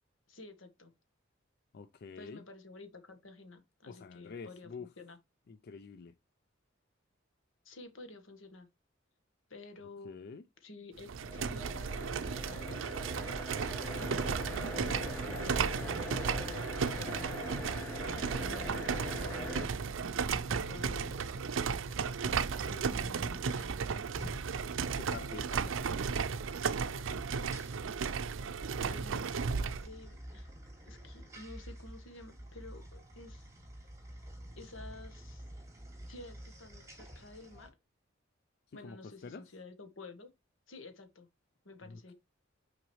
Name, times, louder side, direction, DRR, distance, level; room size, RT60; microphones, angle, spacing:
voice 1, 0.3-0.9 2.2-5.2 7.6-8.7 9.5-10.2 10.6-12.8 13.9-17.8 18.3-19.8 20.7-21.5 22.7-23.8 28.8-30.5 30.8-33.5 34.6-35.4 36.1-37.7 38.7-40.3 40.7-41.3 41.6-42.1, left 3 dB, 80° left, 1.4 m, -51 dB
voice 2, 1.7-2.4 3.9-4.9 5.5-6.1 10.0-10.4 14.2-14.8 24.9-26.3 38.7-39.4 41.8-42.1, left 5 dB, 55° left, 0.4 m, -48 dB
sound 1, 11.0-29.9, right 5 dB, 80° right, 0.5 m, -35 dB
sound 2, 11.2-19.7, left 1 dB, 10° left, 1.7 m, -42 dB
sound 3, 20.3-37.7, equal, 15° right, 2.7 m, -50 dB
6.0 x 5.0 x 3.1 m
head